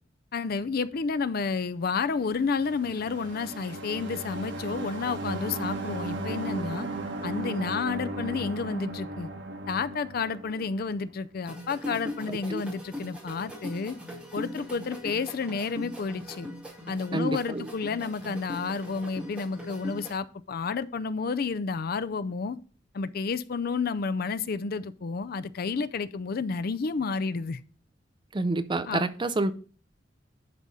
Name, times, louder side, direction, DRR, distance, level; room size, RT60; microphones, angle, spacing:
voice 1, 0.3-6.9 7.2-9.3 9.7-14.0 14.3-16.5 16.9-22.6 22.9-27.6 28.9-29.0, left 4 dB, 55° left, 0.4 m, -30 dB
sound 1, 2.4-11.1, right 2 dB, 75° right, 1.4 m, -36 dB
sound 2, 11.5-20.1, left 1 dB, 5° right, 2.1 m, -40 dB
voice 2, 17.1-17.7 28.3-29.5, right 2 dB, 25° right, 0.5 m, -28 dB
11.0 x 4.2 x 4.8 m
head